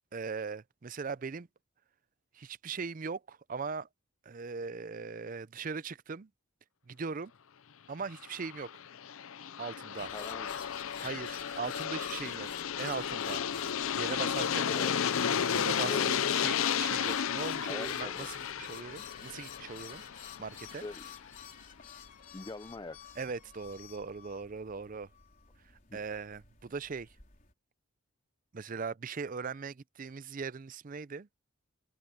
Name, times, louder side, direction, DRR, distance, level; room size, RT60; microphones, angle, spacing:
voice 1, 0.1-1.5 2.3-3.9 4.3-6.3 6.9-7.3 7.9-8.7 9.6-10.1 11.0-12.5 12.8-13.4 13.9-14.7 15.5-20.0 20.4-20.8 23.2-25.1 25.9-27.1 28.5-31.3, right 5 dB, 40° right, 0.4 m, -39 dB
Aircraft, 8.2-21.0, left 8 dB, 75° left, 0.6 m, -33 dB
sound 1, 10.0-27.5, left 8 dB, 40° left, 4.4 m, -50 dB
voice 2, 10.1-10.6 14.6-15.0 15.8-16.1 17.7-18.3 20.8-21.1 22.3-23.0 25.9-26.0, left 2 dB, 20° left, 0.4 m, -42 dB
head